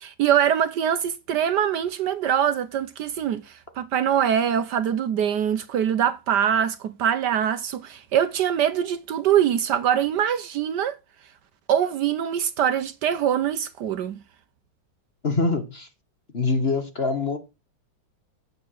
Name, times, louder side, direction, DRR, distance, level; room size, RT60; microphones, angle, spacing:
voice 1, 0.0-10.9 11.7-14.2, right 9 dB, 65° right, 1.3 m, -23 dB
voice 2, 15.2-15.9 16.3-17.4, left 3 dB, 35° left, 1.5 m, -24 dB
9.2 x 8.1 x 6.3 m
omnidirectional pair, 2.1 m